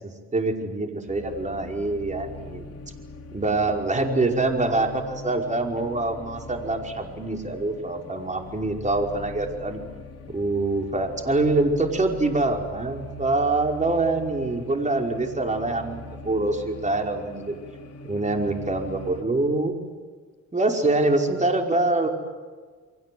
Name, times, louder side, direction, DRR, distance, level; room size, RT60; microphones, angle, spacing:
voice 1, 0.0-2.7 3.3-9.8 10.3-17.6 18.0-19.7 20.5-22.1, right 2 dB, 25° right, 2 dB, 5.1 m, -25 dB
sound 1, 1.1-19.2, left 2 dB, 55° left, 3.4 m, -42 dB
30.0 x 23.0 x 7.9 m, 1.5 s
cardioid pair, 90°, 30 cm